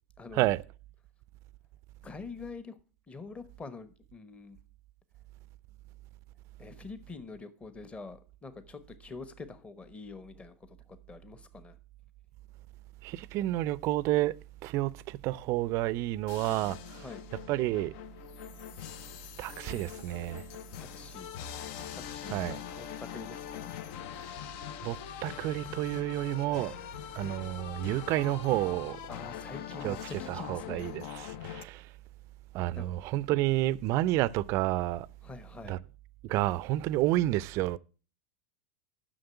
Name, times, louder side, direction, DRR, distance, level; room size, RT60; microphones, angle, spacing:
voice 1, 0.2-0.5 2.0-2.8 3.1-4.6 6.6-10.8 11.1-11.8 16.9-17.2 20.8-21.3 21.9-23.7 29.1-30.8 32.7-32.9 35.2-35.8, left 4 dB, 20° left, 1.1 m, -45 dB
voice 2, 13.0-14.3 14.6-17.0 17.5-17.9 19.4-20.4 22.3-22.6 24.8-26.7 27.2-29.0 29.8-30.0 30.3-31.9 32.5-35.1 35.7-35.8 36.2-37.8, right 16 dB, 50° right, 0.4 m, -30 dB
sound 1, 16.3-31.6, left 10 dB, 60° left, 0.6 m, -43 dB
7.8 x 6.2 x 7.0 m
hypercardioid pair, 105°, 6 cm